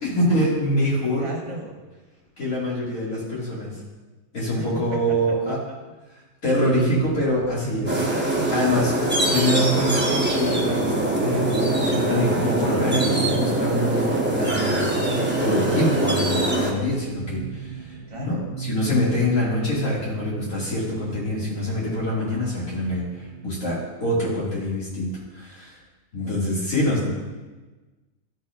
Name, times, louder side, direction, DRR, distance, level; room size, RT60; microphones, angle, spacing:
voice 1, 0.0-1.2 2.4-3.7 4.3-5.6 6.4-8.1 8.5-15.1 15.4-17.7 18.2-25.8 26.1-27.1, left 1 dB, 75° left, -7 dB, 2.4 m, -25 dB
voice 2, 1.2-1.8 4.6-5.6 18.1-18.4 26.9-27.1, right 2 dB, 55° right, -1 dB, 1.4 m, -36 dB
sound 1, 6.7-23.9, right 6 dB, 90° right, 1.1 m, -34 dB
sound 2, 7.9-16.7, right 1 dB, 10° right, 0.5 m, -23 dB
12.5 x 4.1 x 2.3 m, 1.2 s
omnidirectional pair, 1.5 m